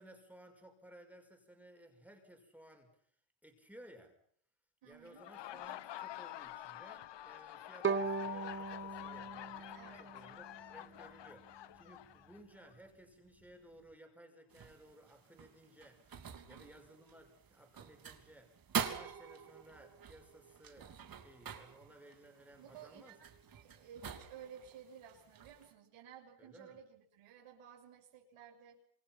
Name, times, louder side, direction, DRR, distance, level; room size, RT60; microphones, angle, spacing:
voice 1, 0.0-3.1 3.4-4.1 4.8-18.6 18.8-20.9 21.2-23.2 26.4-26.8, right 1 dB, 5° right, 3 dB, 5.8 m, -59 dB
voice 2, 4.8-5.3 9.7-10.1 16.3-16.7 22.6-28.8, right 8 dB, 85° right, 1 dB, 6.9 m, -55 dB
Laughter, 5.0-12.7, left 13 dB, 60° left, 1.0 m, -48 dB
Bowed string instrument, 7.8-10.9, right 5 dB, 25° right, 1.3 m, -39 dB
sound 1, 14.5-25.7, right 7 dB, 45° right, 3.3 m, -46 dB
28.0 x 27.5 x 6.0 m, 0.64 s
cardioid pair, 150°, 49 cm